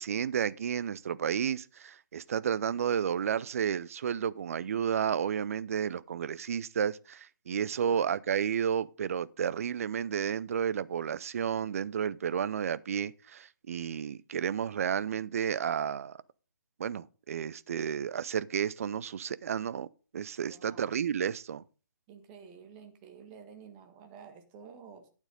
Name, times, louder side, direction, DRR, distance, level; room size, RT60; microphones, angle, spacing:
voice 1, 0.0-16.2 16.8-19.9 20.1-21.6, right 8 dB, 45° right, 0.5 m, -32 dB
voice 2, 7.7-8.1 20.5-20.8 22.1-25.1, right 6 dB, 20° right, 1.7 m, -51 dB
12.0 x 8.9 x 3.9 m
figure-of-eight pair, 140°, 11 cm